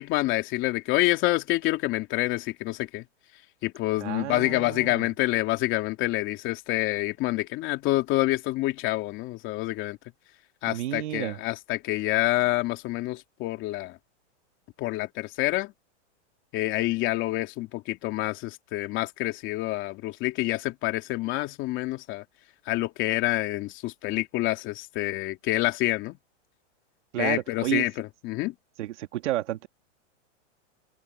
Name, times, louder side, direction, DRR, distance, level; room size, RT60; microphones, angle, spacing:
voice 1, 0.0-3.0 3.6-10.0 10.6-14.0 14.8-15.7 16.5-22.2 22.7-26.2 27.2-28.5, left 18 dB, 30° left, 3.1 m, -27 dB
voice 2, 4.0-5.1 10.7-11.4 27.1-27.9 28.8-29.7, right 14 dB, 65° right, 2.7 m, -31 dB
supercardioid pair, 155°, 37 cm